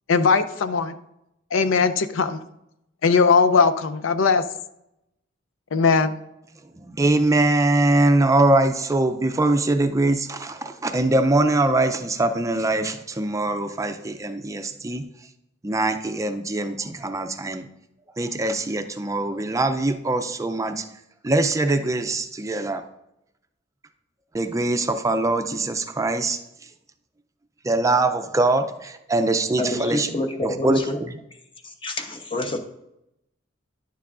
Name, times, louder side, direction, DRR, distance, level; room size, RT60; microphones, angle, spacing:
voice 1, 0.1-1.0 1.5-2.4 3.0-4.4 5.7-6.2, left 5 dB, 90° left, 12 dB, 0.5 m, -19 dB
voice 2, 6.8-15.1 15.6-17.7 18.2-20.8 21.2-22.8 24.3-26.4 27.6-30.1 30.4-30.8, right 2 dB, 15° right, 8 dB, 0.4 m, -22 dB
voice 3, 29.6-31.0 31.8-32.6, left 1 dB, 25° left, 5 dB, 0.8 m, -27 dB
10.5 x 6.8 x 2.5 m, 0.83 s
head